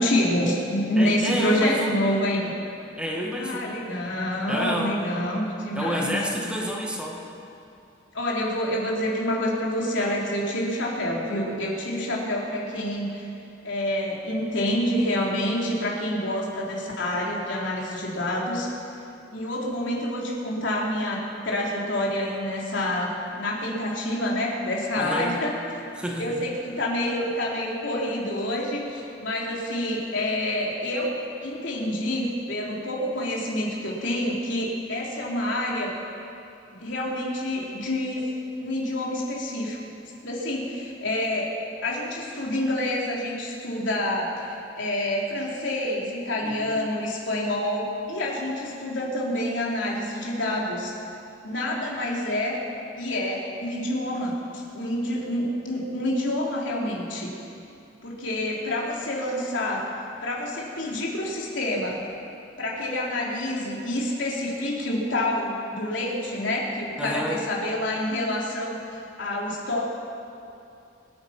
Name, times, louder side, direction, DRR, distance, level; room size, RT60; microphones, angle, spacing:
voice 1, 0.0-2.5 3.4-6.2 8.1-13.3 13.6-18.7 19.3-25.5 26.2-35.9 36.8-38.3 38.6-39.8 40.2-41.5 41.8-50.9 51.4-52.6 53.0-57.3 58.0-59.9 60.2-62.0 62.6-69.8, left 1 dB, 80° left, -3 dB, 3.4 m, -27 dB
voice 2, 1.0-2.0 3.0-3.8 4.5-5.0 5.7-7.2 25.0-25.4 26.0-26.4 46.4-46.8 67.0-67.4, equal, 5° right, -2 dB, 2.0 m, -29 dB
26.0 x 8.9 x 5.9 m, 2.7 s
head